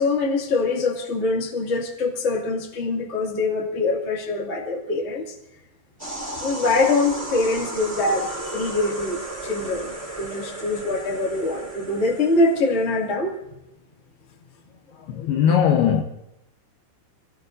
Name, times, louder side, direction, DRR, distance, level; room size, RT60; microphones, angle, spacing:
voice 1, 0.0-5.3 6.4-13.4, left 3 dB, 30° left, 1.2 m, -24 dB
sound 1, 6.0-12.9, right 1 dB, 5° right, 4.7 m, -34 dB
voice 2, 15.1-16.0, left 8 dB, 80° left, 2.4 m, -19 dB
27.0 x 17.0 x 2.6 m
omnidirectional pair, 5.3 m